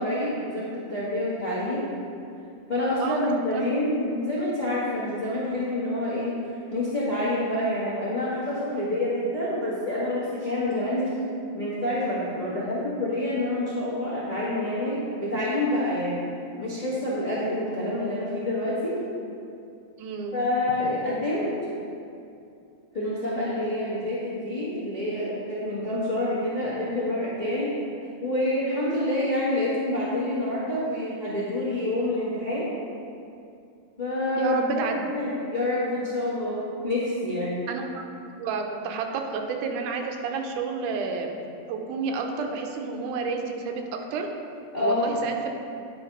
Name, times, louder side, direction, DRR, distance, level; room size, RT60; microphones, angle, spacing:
voice 1, 0.0-1.9 2.7-6.4 6.7-11.0 11.5-16.2 16.6-19.0 20.3-21.5 22.9-27.7 28.2-32.7 34.0-34.9 35.1-37.6 44.7-45.1, left 1 dB, 40° left, -10 dB, 0.6 m, -27 dB
voice 2, 20.0-20.4 34.4-35.0 37.7-41.3 41.7-44.3 44.8-45.5, right 5 dB, 85° right, 3 dB, 2.2 m, -30 dB
9.6 x 3.4 x 5.3 m, 2.6 s
omnidirectional pair, 3.5 m